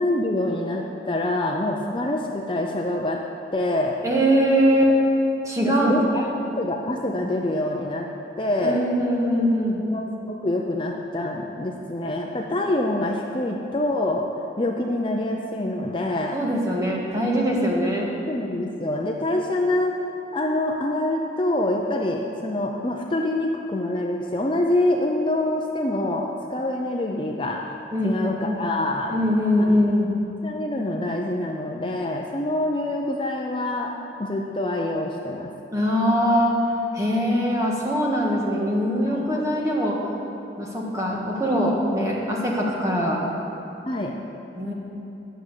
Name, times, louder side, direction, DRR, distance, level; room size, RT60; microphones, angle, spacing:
voice 1, 0.0-3.2 3.5-4.0 5.6-6.0 6.6-8.1 8.4-8.8 9.9-14.2 14.6-16.4 18.3-19.9 20.3-27.6 28.0-29.1 29.6-29.8 30.4-33.9 34.2-35.5 39.1-39.5 43.8-44.1, left 1 dB, 25° left, 0 dB, 0.6 m, -25 dB
voice 2, 4.0-4.9 5.4-5.9 8.6-9.8 16.3-18.1 27.9-28.3 29.1-30.1 35.7-36.6 36.9-40.0 40.6-43.2 44.5-44.7, equal, 15° right, -3 dB, 1.6 m, -22 dB
11.0 x 6.4 x 8.3 m, 2.9 s
head